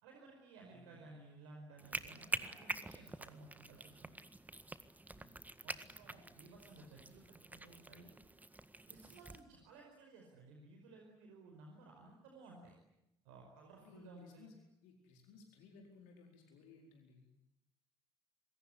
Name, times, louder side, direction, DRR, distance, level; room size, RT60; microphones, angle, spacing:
voice 1, 0.0-4.1 5.6-8.2 8.9-12.7 13.2-14.5, right 3 dB, 70° right, 1 dB, 5.1 m, -57 dB
voice 2, 0.6-1.1 5.1-6.0 13.8-17.3, left 4 dB, 65° left, 2 dB, 4.5 m, -61 dB
sound 1, 1.8-9.4, right 2 dB, 10° right, 1.8 m, -46 dB
27.0 x 22.0 x 9.8 m, 0.86 s
figure-of-eight pair, 55°, 14 cm